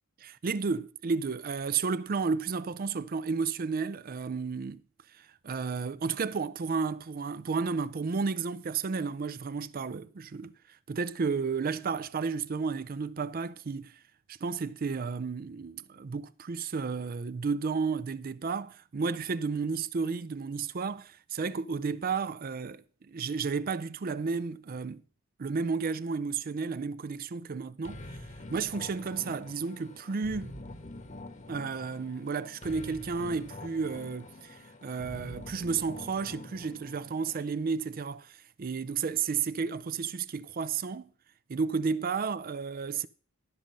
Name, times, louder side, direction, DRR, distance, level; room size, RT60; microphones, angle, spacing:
voice 1, 0.2-4.8 5.1-14.0 14.3-25.0 25.4-28.2 28.5-30.6 31.5-41.1 41.5-43.1, right 5 dB, 45° right, 0.4 m, -32 dB
sound 1, 27.8-37.4, left 1 dB, 35° left, 1.2 m, -45 dB
12.0 x 5.3 x 7.4 m
head